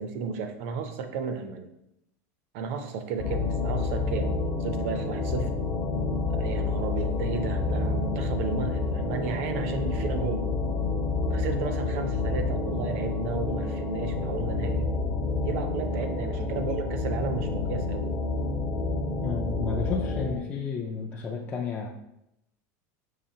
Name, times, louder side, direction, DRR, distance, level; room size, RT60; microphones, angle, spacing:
voice 1, 0.0-1.7 2.5-5.5 6.3-10.5 11.3-14.9 15.4-18.1, right 6 dB, 60° right, 7 dB, 0.6 m, -33 dB
sound 1, 3.2-20.4, left 3 dB, 35° left, 0.7 m, -29 dB
voice 2, 19.2-21.9, left 5 dB, 15° left, -2 dB, 0.3 m, -32 dB
5.6 x 3.3 x 2.8 m, 0.82 s
supercardioid pair, 165°, 9 cm